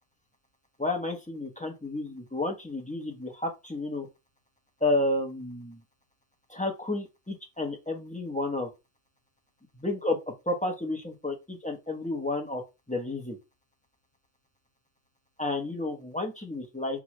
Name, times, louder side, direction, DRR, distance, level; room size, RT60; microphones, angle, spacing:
voice 1, 0.8-4.1 4.8-5.8 6.5-8.7 9.7-12.6 12.9-13.4 15.4-17.0, left 2 dB, 5° left, 0.7 m, -31 dB
6.0 x 2.4 x 3.0 m
omnidirectional pair, 1.4 m